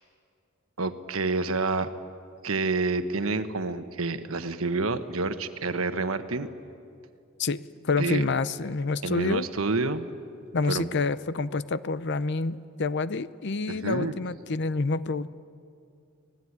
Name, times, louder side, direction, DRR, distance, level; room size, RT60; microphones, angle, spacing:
voice 1, 0.8-1.9 2.4-6.5 8.0-8.2 9.0-10.1 10.7-10.9 13.7-14.1, right 3 dB, 90° right, 9 dB, 1.3 m, -28 dB
voice 2, 7.4-9.5 10.5-15.3, left 3 dB, 55° left, 15 dB, 0.7 m, -28 dB
25.0 x 18.0 x 9.7 m, 2.5 s
head